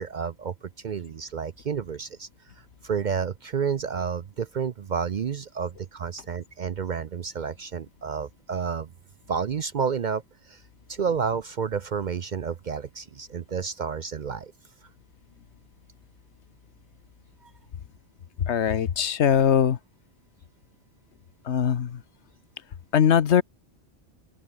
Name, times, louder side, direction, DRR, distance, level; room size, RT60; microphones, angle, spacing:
voice 1, 0.0-2.3 2.6-8.9 9.3-10.6 10.9-14.5 17.4-17.5, right 6 dB, 50° right, 0.6 m, -30 dB
voice 2, 18.5-19.8 21.4-22.0 22.9-23.4, left 8 dB, 75° left, 1.3 m, -21 dB
open air
omnidirectional pair, 1.2 m